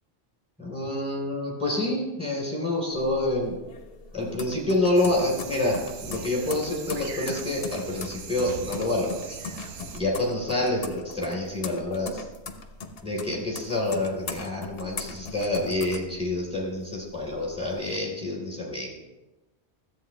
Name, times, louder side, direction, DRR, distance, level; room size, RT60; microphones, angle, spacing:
voice 1, 0.6-3.6 4.1-9.4 9.9-12.2 13.0-18.9, left 1 dB, 5° right, -2 dB, 3.6 m, -27 dB
sound 1, 2.9-16.7 17.1-18.0, left 4 dB, 60° left, 1.0 m, -39 dB
sound 2, 4.9-10.0, right 6 dB, 55° right, 0.8 m, -40 dB
13.0 x 8.2 x 3.2 m, 1.0 s
omnidirectional pair, 1.1 m